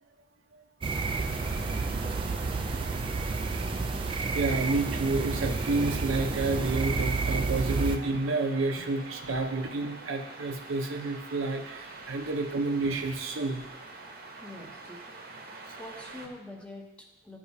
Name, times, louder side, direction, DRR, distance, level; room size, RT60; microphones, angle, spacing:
sound 1, 0.8-8.0, right 4 dB, 25° right, 0.3 m, -30 dB
sound 2, 0.9-16.3, right 3 dB, 50° right, 0.9 m, -45 dB
voice 1, 1.5-2.6 4.1-13.6, right 3 dB, 75° right, 4 dB, 0.7 m, -30 dB
voice 2, 14.4-15.2 15.8-17.4, left 1 dB, 5° left, 1 dB, 0.7 m, -45 dB
13.0 x 4.9 x 2.7 m, 1.0 s
head